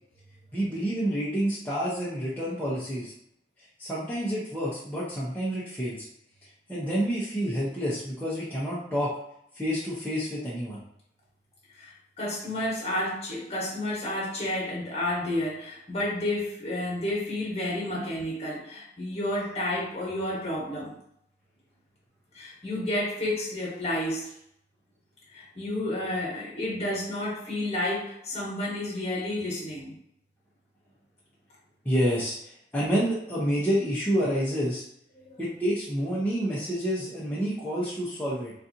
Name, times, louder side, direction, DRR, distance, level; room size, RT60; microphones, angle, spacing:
voice 1, 0.5-3.1 3.8-6.0 6.7-9.1 9.5-10.8 31.8-32.4 32.7-34.8 35.4-38.5, equal, 10° left, -9 dB, 0.7 m, -28 dB
voice 2, 11.7-21.0 22.3-24.3 25.3-29.9 35.2-35.4, left 1 dB, 35° left, -4 dB, 1.2 m, -31 dB
4.0 x 2.5 x 2.7 m, 0.73 s
head